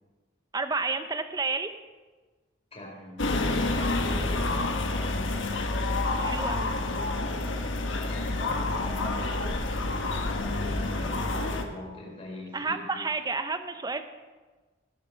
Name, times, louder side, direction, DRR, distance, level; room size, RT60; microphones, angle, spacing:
voice 1, 0.5-1.7 6.2-6.7 12.5-14.0, right 4 dB, 20° right, 9 dB, 0.6 m, -30 dB
voice 2, 2.7-3.2 3.6-4.6 5.0-5.5 8.0-13.1, left 1 dB, 30° left, -3 dB, 4.2 m, -43 dB
sound 1, 3.2-11.6, left 2 dB, 90° left, 1.4 m, -28 dB
16.0 x 7.7 x 6.1 m, 1.3 s
head